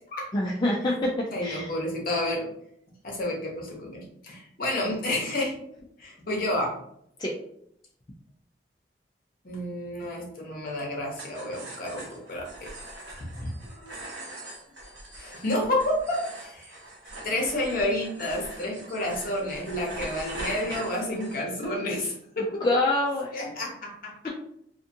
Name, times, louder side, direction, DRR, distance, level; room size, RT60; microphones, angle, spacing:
voice 1, 0.3-1.1 1.4-1.7 7.2-7.3 22.6-23.3, left 1 dB, 25° left, -4 dB, 0.3 m, -25 dB
voice 2, 1.3-2.5 3.0-5.6 6.0-6.8 9.4-12.7 13.2-14.2 15.1-16.8 17.2-22.7 23.3-24.3, left 1 dB, 50° left, -1 dB, 0.8 m, -30 dB
sound 1, 11.1-21.7, right 1 dB, 90° right, 1.0 m, -42 dB
2.5 x 2.5 x 2.6 m, 0.71 s
head